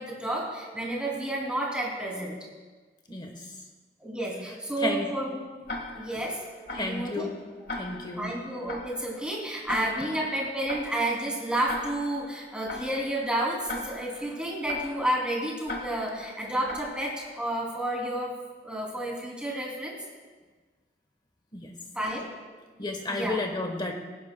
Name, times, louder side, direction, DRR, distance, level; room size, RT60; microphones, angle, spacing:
voice 1, 0.0-2.3 4.0-5.4 5.9-6.4 6.7-7.3 8.2-18.3 18.6-19.9 21.9-22.3 23.1-23.4, right 1 dB, 5° right, -3 dB, 2.8 m, -31 dB
voice 2, 3.1-3.5 4.8-5.1 5.7-5.9 6.7-7.4 7.7-8.4 21.5-21.7 22.8-23.9, left 2 dB, 25° left, 4 dB, 1.1 m, -32 dB
Tick-tock, 5.7-17.5, left 2 dB, 65° left, 1.7 m, -41 dB
21.0 x 11.0 x 2.2 m, 1.4 s
head